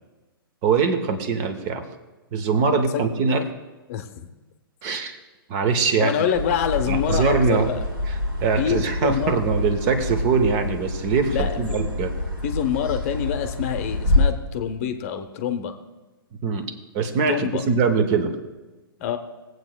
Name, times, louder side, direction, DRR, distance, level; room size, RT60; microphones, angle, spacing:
voice 1, 0.6-1.8 2.3-3.4 4.8-5.2 5.5-6.1 6.9-7.7 8.4-12.2 16.4-18.4, right 5 dB, 30° right, 8 dB, 0.9 m, -22 dB
voice 2, 3.9-4.3 6.0-7.8 8.6-9.3 11.3-11.8 12.4-15.7 17.3-17.6 19.0-19.2, left 9 dB, 40° left, 7 dB, 0.8 m, -26 dB
sound 1, 6.3-14.3, left 2 dB, 75° right, 2.5 m, -27 dB
19.0 x 7.9 x 2.3 m, 1.2 s
figure-of-eight pair, 115°, 12 cm